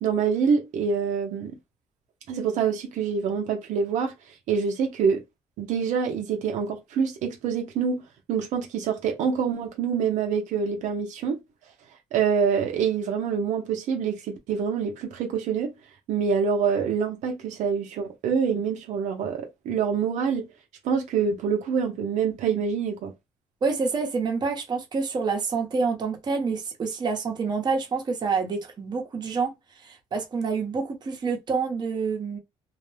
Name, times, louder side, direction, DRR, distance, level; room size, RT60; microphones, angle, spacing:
voice 1, 0.0-1.6 2.3-4.1 4.5-5.2 5.6-8.0 8.3-11.4 12.1-15.7 16.1-20.4 20.8-23.1, right 6 dB, 75° right, 0.6 m, -26 dB
voice 2, 23.6-29.5 29.8-32.4, right 4 dB, 35° right, 0.8 m, -27 dB
2.4 x 2.1 x 3.3 m
cardioid pair, 120°, 12 cm